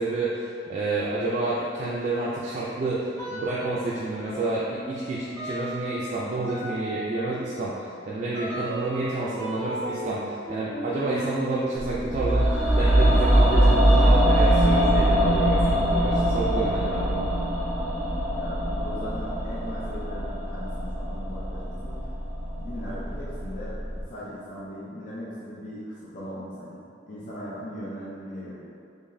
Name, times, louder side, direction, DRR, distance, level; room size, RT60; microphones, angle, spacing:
voice 1, 0.0-17.3, right 2 dB, 40° right, -7 dB, 0.3 m, -29 dB
sound 1, 3.2-3.9 4.3-14.6, right 1 dB, 10° left, 1.2 m, -37 dB
sound 2, 11.7-24.0, equal, 60° left, 1.0 m, -35 dB
sound 3, 12.1-22.2 22.5-22.6, right 1 dB, 10° right, 0.8 m, -22 dB
voice 2, 18.3-22.1 22.6-28.7, equal, 45° left, -8 dB, 0.5 m, -39 dB
3.8 x 3.2 x 2.6 m, 2.4 s
head